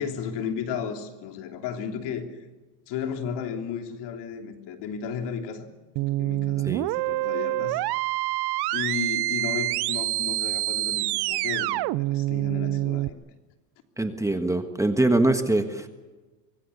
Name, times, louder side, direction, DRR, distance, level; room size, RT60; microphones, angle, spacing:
voice 1, 0.0-2.4 2.9-5.7 6.0-7.8 8.7-13.2, left 7 dB, 60° left, 4 dB, 3.4 m, -34 dB
sound 1, 6.0-13.1, right 18 dB, 55° right, 0.7 m, -26 dB
voice 2, 14.0-15.9, right 2 dB, 5° right, 7 dB, 1.4 m, -23 dB
24.5 x 24.0 x 7.1 m, 1.2 s
cardioid pair, 130°, 46 cm